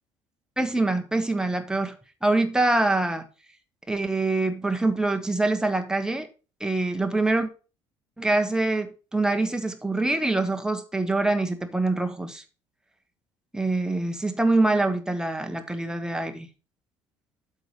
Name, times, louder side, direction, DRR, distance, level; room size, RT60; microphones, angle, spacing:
voice 1, 0.6-2.0 2.2-3.2 3.9-6.3 6.6-7.5 8.2-12.4 13.5-16.5, right 2 dB, 5° right, 1.3 m, -25 dB
7.8 x 5.9 x 4.9 m
figure-of-eight pair, 55°, 16 cm